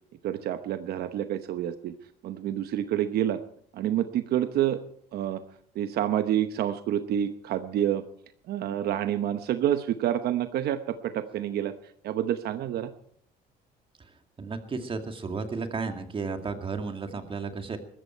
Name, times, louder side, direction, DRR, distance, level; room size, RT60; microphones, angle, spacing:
voice 1, 0.2-1.9 2.2-3.4 3.7-4.8 5.1-5.4 5.7-8.0 8.5-11.7 12.0-12.9, right 11 dB, 70° right, 9 dB, 1.0 m, -28 dB
voice 2, 14.4-17.8, right 4 dB, 30° right, 6 dB, 2.3 m, -33 dB
21.5 x 14.0 x 4.5 m, 0.62 s
cardioid pair, 110°, 17 cm